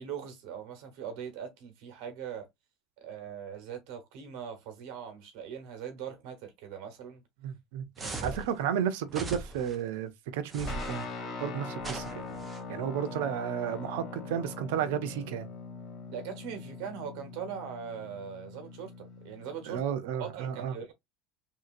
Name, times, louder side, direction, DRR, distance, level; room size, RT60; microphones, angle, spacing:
voice 1, 0.0-2.5 3.0-7.2 8.0-8.4 16.1-19.8 20.2-20.9, right 8 dB, 65° right, 1.1 m, -41 dB
voice 2, 7.4-7.8 8.2-11.1 11.4-12.2 12.7-15.5 19.7-20.9, right 9 dB, 85° right, 0.6 m, -33 dB
sound 1, 8.0-8.5 9.1-9.7 10.5-11.0 11.8-12.6, right 2 dB, 15° right, 0.7 m, -39 dB
Guitar, 10.7-19.8, left 4 dB, 35° left, 0.8 m, -42 dB
3.2 x 2.7 x 2.5 m
cardioid pair, 150°, 0 cm